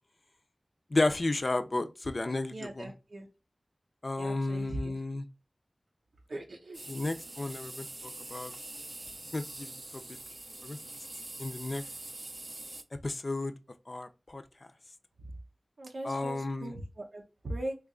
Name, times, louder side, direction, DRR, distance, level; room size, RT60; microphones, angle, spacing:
voice 1, 0.9-2.9 4.0-5.3 6.9-8.5 9.3-9.7 10.1-10.2 10.6-10.8 11.4-11.8 13.0-13.5 13.9-14.4 16.0-16.7, left 2 dB, 55° left, 0.4 m, -32 dB
voice 2, 2.5-3.3 4.2-4.9 6.3-6.8 15.8-17.8, right 1 dB, 90° right, 0.6 m, -40 dB
sound 1, 6.7-12.8, right 2 dB, 45° right, 0.4 m, -44 dB
3.0 x 2.3 x 3.6 m
wide cardioid pair, 50°, 0 cm